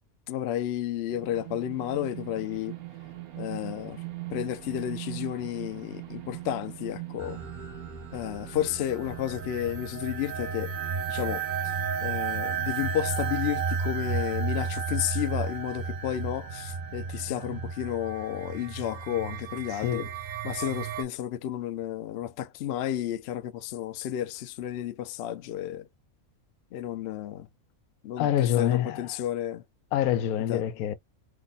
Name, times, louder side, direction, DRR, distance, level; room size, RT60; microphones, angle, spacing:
voice 1, 0.3-2.8 3.4-4.0 4.3-7.4 8.1-10.7 11.1-11.7 12.0-20.1 20.4-25.9 26.7-27.5 28.0-29.6 30.5-30.6, left 11 dB, 65° left, 0.6 m, -32 dB
sound 1, 1.1-17.7, right 15 dB, 75° right, 1.2 m, -43 dB
sound 2, 7.2-21.0, right 5 dB, 50° right, 0.6 m, -33 dB
voice 2, 28.2-29.1 29.9-30.9, left 11 dB, 90° left, 1.1 m, -26 dB
3.2 x 2.1 x 3.9 m
omnidirectional pair, 1.5 m